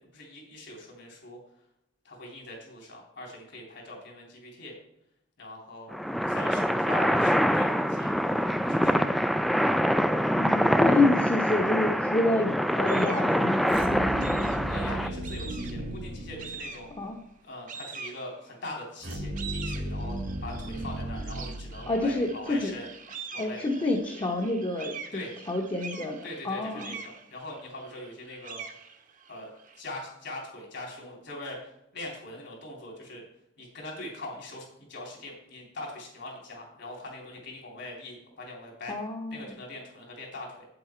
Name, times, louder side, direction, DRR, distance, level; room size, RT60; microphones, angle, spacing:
voice 1, 0.1-1.4 2.0-4.7 5.4-6.0 6.3-8.1 8.4-9.0 14.6-16.9 17.4-22.9 23.3-23.9 25.1-25.3 26.2-28.6 29.3-29.5 29.8-33.2 33.6-39.0 39.3-40.7, left 2 dB, 65° left, -1 dB, 3.5 m, -42 dB
sound 1, 5.9-15.1, equal, ahead, 0.3 m, -25 dB
voice 2, 10.4-14.3 17.0-17.2 21.9-22.7 23.4-25.2 25.5-26.2 26.4-26.9 38.9-39.5, left 2 dB, 25° left, 0 dB, 1.0 m, -28 dB
sound 2, 12.9-13.4 14.2-14.8 15.2-15.9 16.4-17.1 17.7-18.6 19.1-29.8, right 6 dB, 45° right, 0.9 m, -44 dB
sound 3, 13.7-17.0 19.0-22.3, right 1 dB, 75° right, 1.7 m, -35 dB
8.4 x 7.9 x 4.5 m, 0.81 s
head